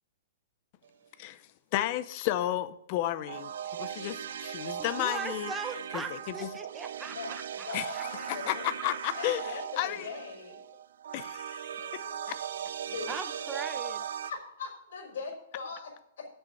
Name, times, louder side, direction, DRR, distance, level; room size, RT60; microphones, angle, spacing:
voice 1, 1.7-5.5 5.9-6.5 7.7-7.9 8.3-10.1 11.1-12.4, left 14 dB, 35° left, 14 dB, 0.6 m, -33 dB
sound 1, 3.3-14.3, right 9 dB, 75° right, 0.5 m, -38 dB
voice 2, 4.8-7.7 7.9-8.3 13.1-14.0, right 4 dB, 10° right, 8 dB, 0.9 m, -40 dB
voice 3, 7.1-10.6 11.7-12.5 12.8-13.4 14.2-16.3, left 4 dB, 75° left, -3 dB, 3.8 m, -42 dB
8.0 x 7.0 x 7.9 m, 0.77 s
hypercardioid pair, 165°, 0 cm